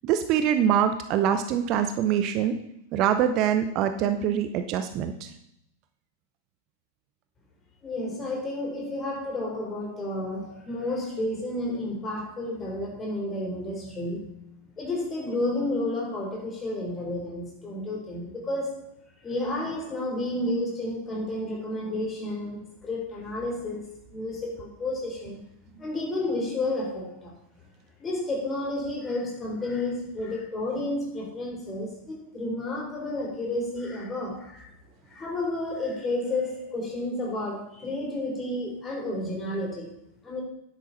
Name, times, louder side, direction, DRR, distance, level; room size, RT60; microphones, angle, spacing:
voice 1, 0.0-2.5 2.9-5.3, right 9 dB, 40° right, 8 dB, 0.7 m, -24 dB
voice 2, 7.8-14.3 14.8-18.9 19.2-25.4 25.8-27.3 28.0-34.7 35.1-39.9 40.2-40.4, left 2 dB, 20° left, -1 dB, 3.8 m, -31 dB
10.0 x 8.4 x 4.2 m, 0.77 s
figure-of-eight pair, 90°, 0 cm